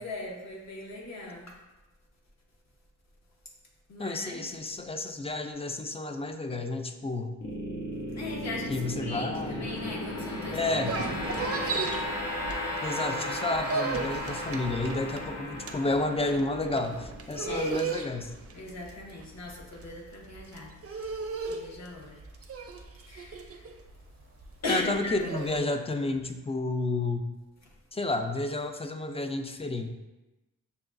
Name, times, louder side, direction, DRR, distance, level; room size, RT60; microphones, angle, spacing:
voice 1, 0.0-1.6 3.9-4.4 8.1-11.9 17.4-17.7 18.5-22.2 23.1-23.7 24.6-25.2, left 2 dB, 50° left, -2 dB, 1.0 m, -39 dB
voice 2, 4.0-7.4 8.7-9.7 10.5-11.0 12.8-18.3 24.7-27.3 27.9-29.9, left 2 dB, 20° left, 6 dB, 0.3 m, -31 dB
sound 1, 7.4-18.6, left 1 dB, 70° left, 0.8 m, -35 dB
sound 2, 10.6-13.0 13.3-25.6, right 4 dB, 45° right, 0.5 m, -36 dB
6.6 x 2.3 x 2.5 m, 1.1 s
cardioid pair, 75°, 34 cm